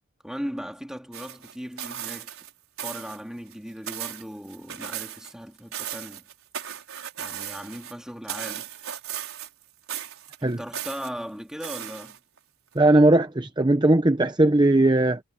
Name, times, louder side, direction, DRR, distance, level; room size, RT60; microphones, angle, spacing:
voice 1, 0.2-2.4 2.8-6.3 7.2-8.7 10.4-12.2, equal, 5° right, 2.6 m, -38 dB
sound 1, 1.1-2.5 2.8-3.2 3.5-5.3 5.6-7.9 8.3-9.6 9.9-11.1 11.6-12.4 12.8-12.9, right 10 dB, 85° right, 5.2 m, -36 dB
voice 2, 12.7-15.2, right 2 dB, 20° right, 0.8 m, -18 dB
head